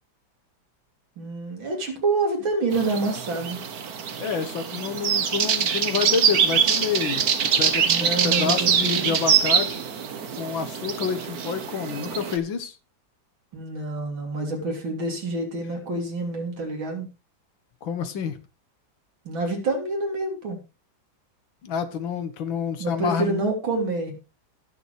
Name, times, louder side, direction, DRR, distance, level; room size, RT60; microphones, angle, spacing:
voice 1, 1.2-3.6 7.9-9.1 13.5-17.1 19.3-20.6 22.8-24.1, right 2 dB, 80° right, 2 dB, 3.7 m, -27 dB
sound 1, 2.7-12.4, right 7 dB, 55° right, 1.5 m, -24 dB
voice 2, 4.2-9.8 10.4-12.7 17.8-18.4 21.6-23.4, left 6 dB, 80° left, 10 dB, 2.0 m, -28 dB
20.0 x 6.9 x 3.3 m, 0.30 s
omnidirectional pair, 2.1 m